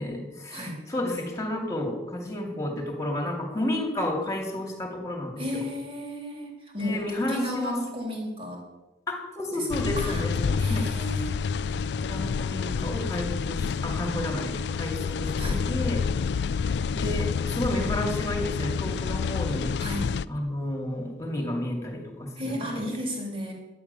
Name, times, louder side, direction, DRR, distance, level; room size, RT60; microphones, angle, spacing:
voice 1, 0.0-5.6 6.8-7.8 9.1-10.9 12.1-16.0 16.9-19.7 20.3-22.8, left 1 dB, 20° left, 2 dB, 2.5 m, -31 dB
voice 2, 5.4-8.6 9.5-9.7 9.9-10.2 10.6-11.3 15.4-15.7 19.8-20.1 22.4-23.5, equal, 30° right, 0 dB, 3.4 m, -33 dB
sound 1, 9.7-20.3, left 5 dB, 75° left, 0.4 m, -28 dB
12.0 x 9.4 x 6.9 m, 1.1 s
head